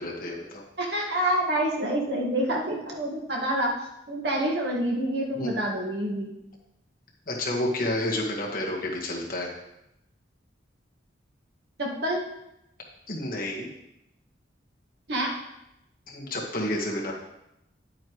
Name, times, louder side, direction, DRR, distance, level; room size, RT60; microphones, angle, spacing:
voice 1, 0.0-0.6 5.3-5.6 7.3-9.5 13.1-13.7 16.1-17.1, left 1 dB, 45° left, -2 dB, 1.7 m, -30 dB
voice 2, 0.8-3.7 4.1-6.3 11.8-12.2 15.1-15.3, right 1 dB, 60° right, -2 dB, 1.8 m, -27 dB
9.6 x 8.6 x 3.1 m, 0.85 s
head